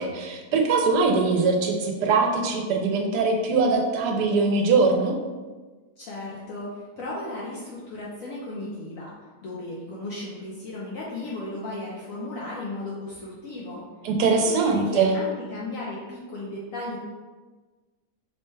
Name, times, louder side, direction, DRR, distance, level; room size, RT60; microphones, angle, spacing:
voice 1, 0.0-5.2 14.0-15.2, right 4 dB, 90° right, 3 dB, 1.2 m, -22 dB
voice 2, 6.0-9.1 9.4-13.8 14.3-17.0, left 2 dB, 65° left, -5 dB, 1.0 m, -35 dB
5.3 x 2.1 x 3.2 m, 1.3 s
omnidirectional pair, 1.7 m